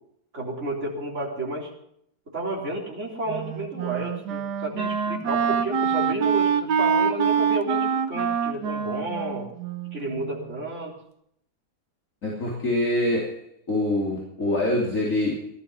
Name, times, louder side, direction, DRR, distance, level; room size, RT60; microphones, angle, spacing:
voice 1, 0.3-1.7 2.3-9.5 9.9-10.9, right 2 dB, 45° right, -3 dB, 4.2 m, -31 dB
Wind instrument woodwind instrument, 3.3-10.5, right 7 dB, 85° right, 1.6 m, -25 dB
voice 2, 12.2-13.4 13.7-15.5, left 1 dB, 50° left, -3 dB, 3.5 m, -25 dB
17.5 x 12.0 x 5.6 m, 0.73 s
omnidirectional pair, 1.7 m